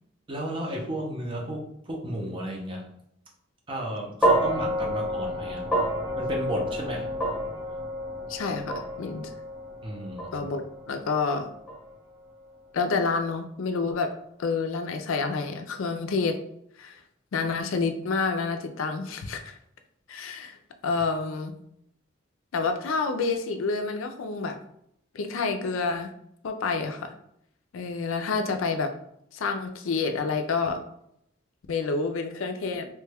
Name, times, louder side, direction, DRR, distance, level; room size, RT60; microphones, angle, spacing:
voice 1, 0.3-2.8 3.7-5.7 6.2-7.1 9.8-10.5, right 1 dB, 25° right, 0 dB, 0.6 m, -33 dB
sound 1, 4.2-12.5, equal, ahead, 0.8 m, -29 dB
voice 2, 8.3-9.3 10.3-11.5 12.7-14.1 14.4-16.4 16.8-17.0 17.3-19.6 20.1-20.6 20.8-21.5 22.5-24.6 25.1-26.1 26.4-27.1 27.7-28.9 29.3-30.8 31.7-32.9, left 4 dB, 85° left, 6 dB, 0.4 m, -28 dB
3.0 x 2.2 x 3.4 m, 0.74 s
head